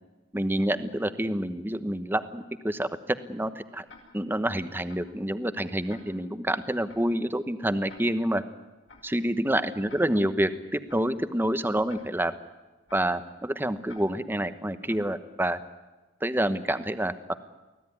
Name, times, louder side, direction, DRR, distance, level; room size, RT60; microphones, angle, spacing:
voice 1, 0.3-3.8 4.1-8.4 9.0-12.3 12.9-15.6 16.2-17.3, right 1 dB, 10° right, 10 dB, 1.0 m, -28 dB
Tick-tock, 3.9-4.0 4.9-5.0 5.9-6.0 6.9-7.0 7.9-8.0 8.9-9.0 9.9-10.0 10.9-11.0 11.9-12.0 12.9-13.0 13.9-14.0 14.9-15.0, left 4 dB, 85° left, 7.4 m, -49 dB
24.5 x 17.0 x 9.8 m, 1.1 s
head